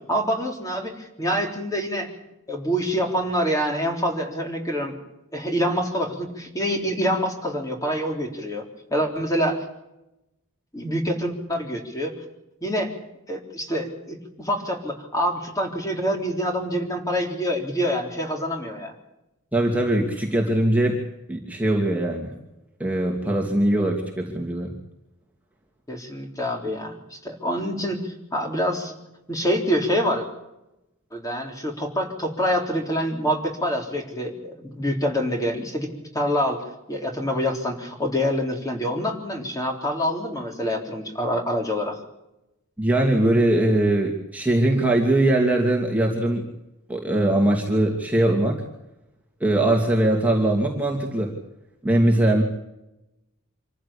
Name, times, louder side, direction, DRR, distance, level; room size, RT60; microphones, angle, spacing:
voice 1, 0.1-2.1 2.5-5.0 5.3-8.6 8.9-9.6 10.7-12.2 12.6-12.9 13.3-18.9 25.9-28.9 29.3-30.3 31.1-35.9 36.1-42.0, equal, 15° left, 2 dB, 3.7 m, -26 dB
voice 2, 19.5-21.0 21.3-22.3 22.8-24.7 42.8-46.5 46.9-48.6 49.4-51.3 51.8-52.4, right 1 dB, 5° right, -1 dB, 2.6 m, -21 dB
26.5 x 15.0 x 8.7 m, 0.91 s
head